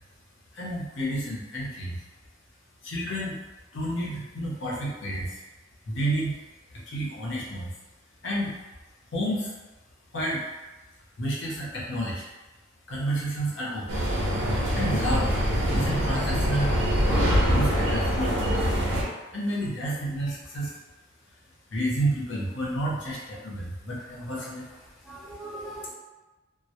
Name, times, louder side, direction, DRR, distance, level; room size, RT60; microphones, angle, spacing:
voice 1, 0.5-2.0 2.8-3.4 3.7-5.3 5.9-6.3 6.9-7.7 8.2-8.5 9.1-9.5 10.1-10.4 11.2-12.2 12.9-14.1 14.7-15.3 15.7-16.8 17.5-18.7 19.3-20.7 21.7-24.6, right 1 dB, 65° left, -5 dB, 0.7 m, -30 dB
sound 1, 13.9-19.0, equal, 70° right, 0.5 m, -24 dB
voice 2, 24.0-25.9, right 2 dB, ahead, -6 dB, 0.4 m, -43 dB
2.1 x 2.1 x 2.8 m, 1.1 s
head